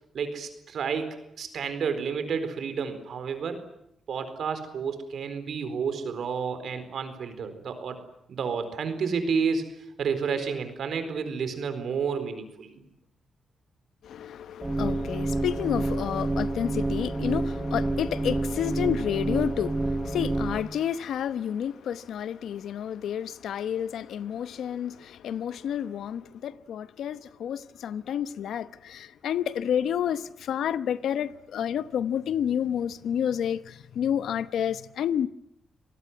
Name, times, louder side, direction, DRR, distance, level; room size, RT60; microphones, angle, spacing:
voice 1, 0.1-3.6 4.1-8.0 8.3-9.7 10.0-12.8, right 6 dB, 70° right, 4.3 m, -30 dB
voice 2, 14.0-35.3, left 9 dB, 80° left, 1.0 m, -30 dB
sound 1, 14.6-20.6, right 2 dB, 10° right, 1.7 m, -28 dB
26.0 x 19.0 x 9.6 m
cardioid pair, 85°, 0 cm